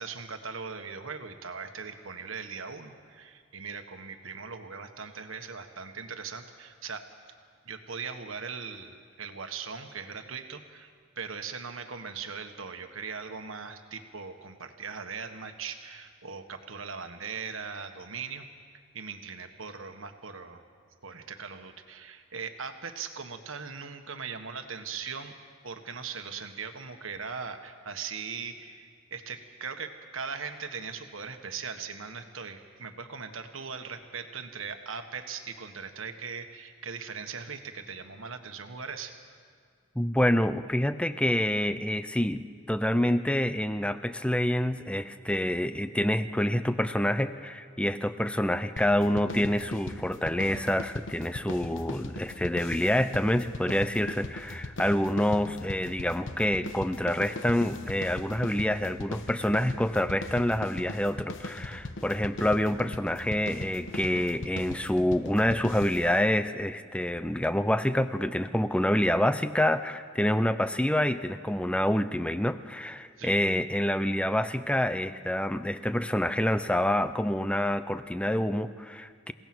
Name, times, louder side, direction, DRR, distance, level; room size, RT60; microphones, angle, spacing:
voice 1, 0.0-7.1 7.6-18.4 18.9-20.6 21.0-25.3 25.6-39.1 73.2-73.4, right 5 dB, 75° right, 7 dB, 1.5 m, -39 dB
voice 2, 40.0-79.3, left 1 dB, 5° left, 12 dB, 0.6 m, -27 dB
sound 1, 48.8-66.2, left 2 dB, 65° left, 1.1 m, -40 dB
28.5 x 17.5 x 6.2 m, 2.1 s
head